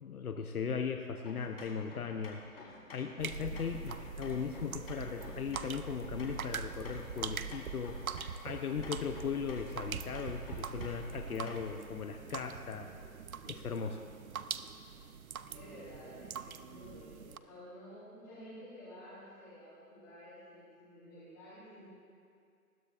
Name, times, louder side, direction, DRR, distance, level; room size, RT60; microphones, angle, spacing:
voice 1, 0.0-2.4 2.9-12.9 13.4-14.0, left 6 dB, 70° left, 5 dB, 0.8 m, -38 dB
sound 1, 1.3-11.8, left 3 dB, 35° left, 1.6 m, -51 dB
sound 2, 3.2-17.4, right 6 dB, 65° right, 0.6 m, -43 dB
voice 2, 15.4-21.9, equal, 10° left, -14 dB, 1.1 m, -52 dB
20.0 x 12.0 x 2.5 m, 2.3 s
hypercardioid pair, 175°, 46 cm